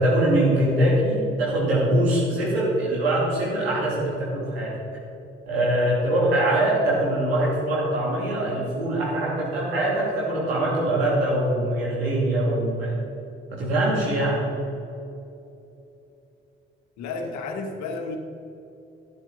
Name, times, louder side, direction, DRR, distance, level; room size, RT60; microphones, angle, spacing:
voice 1, 0.0-4.7 5.5-12.9 13.5-14.4, right 1 dB, 90° right, -5 dB, 2.7 m, -23 dB
voice 2, 17.0-18.2, left 3 dB, 70° left, 4 dB, 1.4 m, -31 dB
11.5 x 11.5 x 3.8 m, 2.9 s
hypercardioid pair, 40°, 30 cm